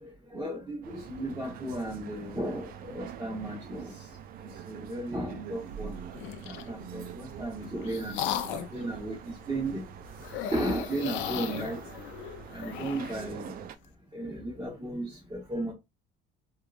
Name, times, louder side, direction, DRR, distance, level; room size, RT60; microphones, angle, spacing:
voice 1, 0.0-3.9 4.7-6.0 6.7-8.2 8.7-9.8 10.5-11.8 12.5-13.5 14.1-15.7, right 1 dB, 15° right, 0.9 m, -34 dB
sound 1, 0.8-13.8, right 8 dB, 50° right, 0.4 m, -44 dB
sound 2, 6.1-6.7 7.4-8.8 10.2-13.3, left 11 dB, 75° left, 0.5 m, -36 dB
3.5 x 2.3 x 2.4 m
cardioid pair, 125°, 20 cm